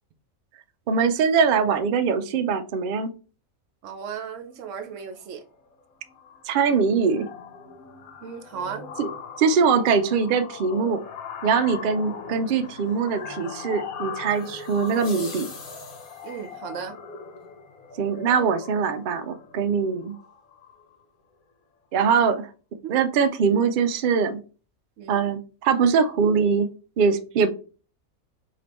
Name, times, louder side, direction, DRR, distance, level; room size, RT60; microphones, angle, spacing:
voice 1, 0.9-3.1 6.5-7.3 9.0-9.1 9.4-11.0 11.4-15.5 18.0-20.2 21.9-22.5 22.9-24.4 25.1-26.7 27.0-27.5, right 6 dB, 90° right, 0.4 m, -22 dB
voice 2, 3.8-5.4 8.2-8.8 16.2-17.0 22.8-22.9 25.0-25.3 27.3-27.5, right 7 dB, 65° right, 1.0 m, -35 dB
sound 1, 4.9-5.2 5.5-5.8 6.1-21.0, left 5 dB, 80° left, 1.2 m, -40 dB
sound 2, 14.3-16.5, left 4 dB, 50° left, 1.2 m, -43 dB
5.1 x 2.9 x 2.9 m
omnidirectional pair, 1.5 m